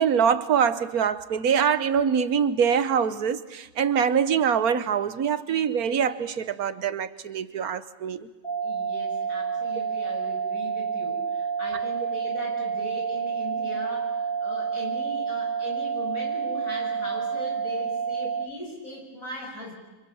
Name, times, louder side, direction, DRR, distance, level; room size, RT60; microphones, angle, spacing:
voice 1, 0.0-8.3, right 7 dB, 90° right, 1.6 m, -24 dB
sound 1, 8.4-18.4, right 6 dB, 20° left, 3.9 m, -29 dB
voice 2, 8.6-19.7, left 1 dB, 70° left, 7.6 m, -39 dB
29.5 x 26.5 x 7.1 m
omnidirectional pair, 1.5 m